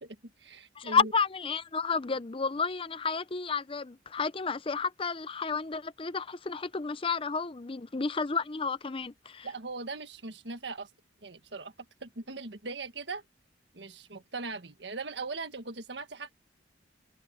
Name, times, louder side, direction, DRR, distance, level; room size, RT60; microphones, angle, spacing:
voice 1, 0.0-1.1 9.4-10.9 11.2-11.7 12.0-13.2 13.7-16.3, right 3 dB, 70° right, 1.7 m, -40 dB
voice 2, 0.8-9.5, left 5 dB, 30° left, 0.6 m, -31 dB
head